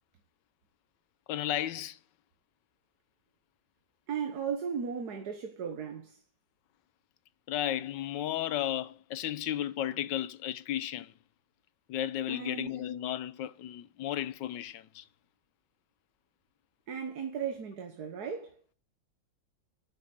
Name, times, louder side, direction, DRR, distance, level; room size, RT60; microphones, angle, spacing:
voice 1, 1.3-2.0 7.5-11.1 11.9-15.0, left 12 dB, 80° left, 1.3 m, -34 dB
voice 2, 4.1-6.2 12.3-12.8 16.9-18.6, right 6 dB, 60° right, 1.7 m, -36 dB
9.0 x 7.3 x 8.1 m
omnidirectional pair, 2.0 m